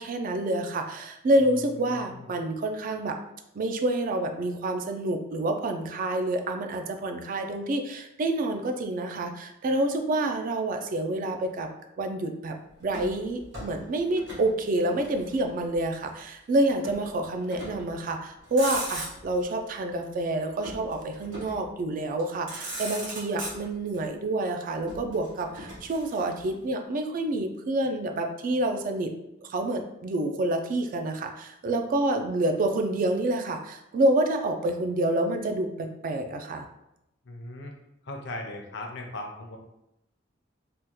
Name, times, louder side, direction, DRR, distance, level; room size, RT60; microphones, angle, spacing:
voice 1, 0.0-3.2 3.5-11.7 12.0-12.6 12.8-29.1 29.4-36.7, right 1 dB, 45° right, 5 dB, 0.3 m, -28 dB
voice 2, 1.9-2.3 37.2-37.7 38.0-39.6, left 2 dB, 65° left, 2 dB, 0.6 m, -38 dB
Motor vehicle (road), 12.9-14.5 14.8-15.9 16.8-17.1 17.5-17.9 18.4-19.4 20.6-21.7 22.2-22.3 22.5-24.0 24.9-26.5, right 1 dB, 75° right, 1.3 m, -38 dB
3.4 x 2.2 x 2.9 m, 0.84 s
head